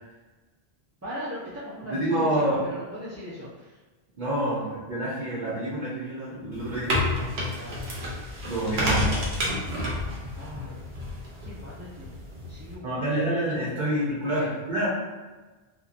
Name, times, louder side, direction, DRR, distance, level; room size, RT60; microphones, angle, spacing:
voice 1, 1.0-3.8 7.6-8.2 9.0-9.3 10.3-10.8 11.4-12.1 12.5-13.0 14.4-14.5, equal, 25° right, -11 dB, 0.4 m, -39 dB
voice 2, 1.9-2.6 4.2-7.3 8.5-9.6 12.8-14.9, right 1 dB, 55° right, -8 dB, 0.8 m, -28 dB
sound 1, 6.5-12.7, left 1 dB, 80° right, 0.9 m, -30 dB
2.9 x 2.2 x 2.4 m, 1.2 s
omnidirectional pair, 1.0 m